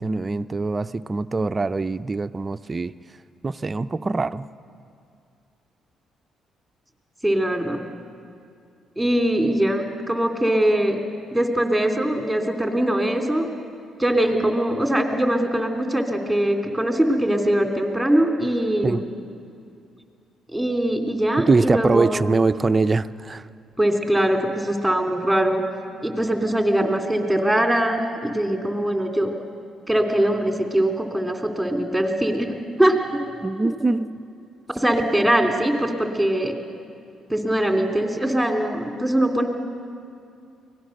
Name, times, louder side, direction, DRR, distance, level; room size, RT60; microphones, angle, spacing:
voice 1, 0.0-2.9 3.4-4.5 18.8-19.0 21.4-23.5 33.4-34.1, right 3 dB, 30° right, 12 dB, 0.5 m, -23 dB
voice 2, 7.2-7.8 9.0-11.0 11.3-13.5 14.0-19.0 20.5-22.2 23.8-25.6 26.0-29.3 29.9-33.2 34.8-36.5 37.3-39.5, right 1 dB, ahead, 2 dB, 3.1 m, -22 dB
24.0 x 17.5 x 6.6 m, 2.5 s
supercardioid pair, 65°, 0 cm